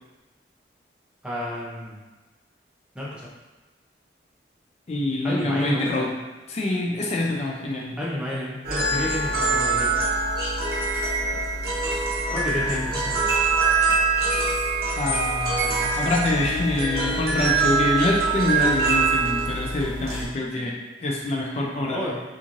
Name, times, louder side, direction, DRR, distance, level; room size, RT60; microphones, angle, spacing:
voice 1, 1.2-2.0 2.9-3.3 5.2-6.1 8.0-9.9 12.3-13.5 21.9-22.1, equal, 5° right, -6 dB, 0.6 m, -30 dB
voice 2, 4.9-6.1 6.5-8.0 15.0-22.1, left 1 dB, 35° left, -2 dB, 0.4 m, -26 dB
sound 1, 8.6-20.2, right 3 dB, 55° right, 0.8 m, -24 dB
3.0 x 2.4 x 2.5 m, 1.2 s
head